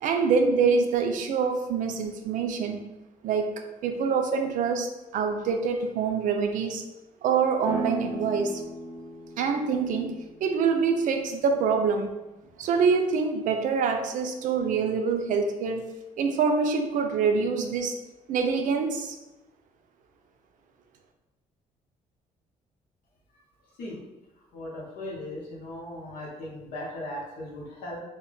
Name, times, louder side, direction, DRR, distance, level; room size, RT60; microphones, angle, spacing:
voice 1, 0.0-2.8 3.2-3.5 3.8-6.8 7.2-8.6 9.4-12.2 12.6-15.9 16.2-18.0 18.3-19.2, right 5 dB, 65° right, 5 dB, 0.4 m, -25 dB
sound 1, 7.6-13.0, right 1 dB, 20° right, 0.7 m, -39 dB
voice 2, 24.5-28.0, left 1 dB, 85° left, -3 dB, 0.9 m, -38 dB
2.2 x 2.1 x 3.8 m, 1.0 s
cardioid pair, 115°, 14 cm